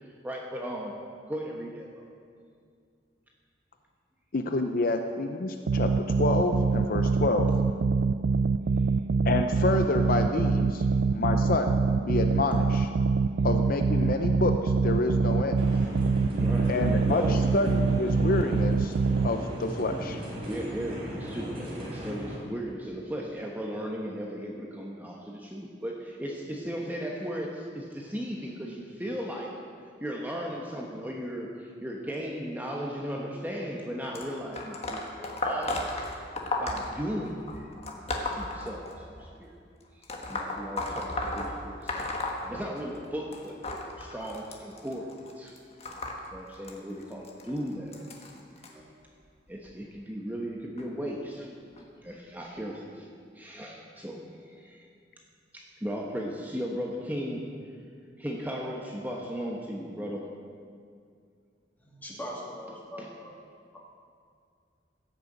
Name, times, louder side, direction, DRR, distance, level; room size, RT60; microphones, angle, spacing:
voice 1, 0.2-0.9 1.3-2.0 16.3-17.4 18.5-18.6 20.5-29.6 30.0-36.1 36.6-37.7 38.1-39.5 39.9-40.0 40.3-42.0 42.4-45.1 45.4-45.5 46.3-48.1 48.5-48.9 49.5-51.5 52.0-53.1 53.3-54.2 54.5-54.9 55.5-57.5 58.2-60.3 63.0-63.1, equal, 10° right, -1 dB, 1.1 m, -36 dB
voice 2, 4.3-7.5 9.2-10.8 11.1-12.9 13.4-15.6 16.7-18.9 19.2-20.2, left 2 dB, 55° left, 6 dB, 0.6 m, -28 dB
sound 1, 5.7-19.3, right 4 dB, 85° right, 0.4 m, -25 dB
sound 2, 15.6-22.4, equal, 35° right, 3.8 m, -37 dB
sound 3, 34.1-39.3 40.0-43.1 43.3-48.7 49.5-49.7 50.8-50.9 51.8-51.9 52.6-52.7, left 2 dB, 35° left, 1.5 m, -35 dB
voice 3, 61.8-63.3, equal, 10° left, -4 dB, 2.8 m, -40 dB
15.5 x 6.8 x 8.0 m, 2.2 s
head